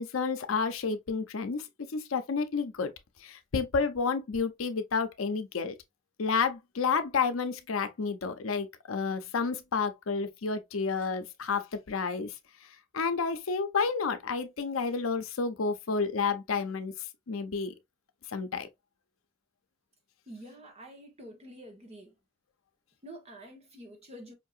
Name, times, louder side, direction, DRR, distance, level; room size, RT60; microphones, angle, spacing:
voice 1, 0.0-2.9 3.2-5.7 6.2-12.3 12.9-16.9 17.3-17.7 18.3-18.7, left 5 dB, 85° left, 0.6 m, -30 dB
voice 2, 20.3-22.1 23.0-24.3, right 1 dB, 30° right, 1.1 m, -47 dB
5.1 x 2.8 x 2.4 m
head